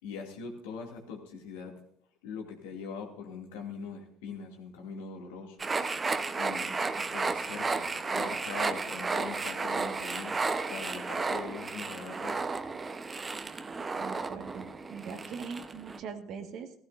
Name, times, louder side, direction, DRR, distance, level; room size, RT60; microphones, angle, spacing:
voice 1, 0.0-1.8 2.2-5.7 6.4-10.4 10.7-12.4, left 5 dB, 75° left, 1 dB, 2.6 m, -42 dB
sound 1, 5.6-16.0, right 4 dB, 25° right, 1.0 m, -33 dB
voice 2, 13.9-16.7, right 6 dB, 55° right, 6 dB, 1.7 m, -42 dB
16.0 x 15.5 x 2.7 m, 0.70 s
hypercardioid pair, 70°, 0 cm